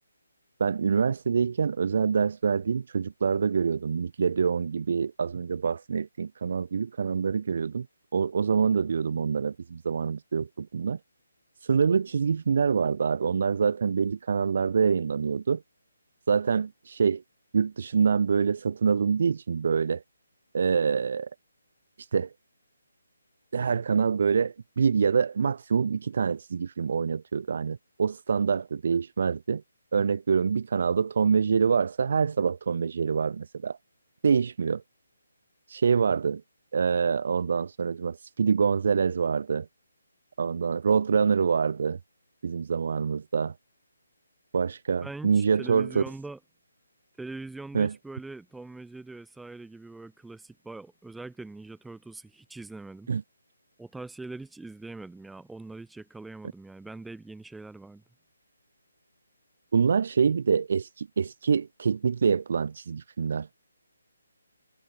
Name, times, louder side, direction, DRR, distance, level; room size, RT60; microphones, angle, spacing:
voice 1, 0.6-7.9 8.1-11.0 11.6-15.6 16.3-17.2 17.5-20.0 20.5-21.3 22.1-22.3 23.5-29.6 29.9-33.8 34.2-34.8 35.7-36.4 36.7-39.6 40.4-42.0 42.4-43.5 44.5-46.0 47.7-47.9 53.1-53.2 59.7-63.5, right 6 dB, 55° right, 1.5 m, -25 dB
voice 2, 45.0-46.4 47.2-53.1 53.8-58.0, right 3 dB, 5° right, 4.3 m, -42 dB
figure-of-eight pair, 150°, 0 cm